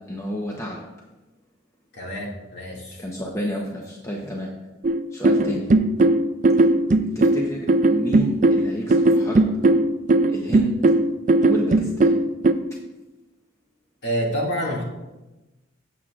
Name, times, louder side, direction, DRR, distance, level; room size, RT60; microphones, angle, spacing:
voice 1, 0.1-0.9 3.0-4.6 5.1-5.7 7.1-9.6 10.3-10.8 11.4-12.2, equal, 15° left, -1 dB, 0.8 m, -30 dB
voice 2, 1.9-3.0 14.0-14.8, equal, 50° left, -3 dB, 2.2 m, -27 dB
sound 1, 4.8-12.5, right 2 dB, 35° right, 0.4 m, -18 dB
15.5 x 7.6 x 2.4 m, 1.1 s
head